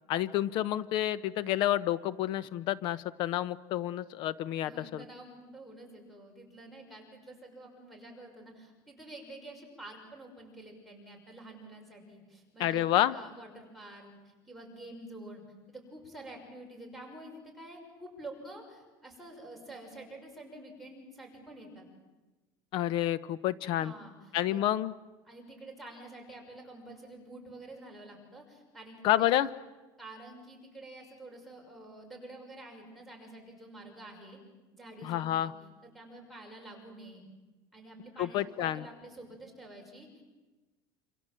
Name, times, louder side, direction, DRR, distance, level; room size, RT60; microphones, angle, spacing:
voice 1, 0.1-5.0 12.6-13.1 22.7-23.9 24.3-24.9 29.0-29.5 35.0-35.5 38.2-38.8, left 13 dB, 45° left, 16 dB, 0.8 m, -29 dB
voice 2, 4.6-15.4 15.7-21.9 23.8-24.1 24.5-24.6 25.3-29.3 30.0-34.4 34.7-35.5 35.8-37.2 37.7-40.2, right 1 dB, ahead, 2 dB, 6.0 m, -48 dB
27.5 x 26.5 x 7.7 m, 1.2 s
cardioid pair, 175°, 11 cm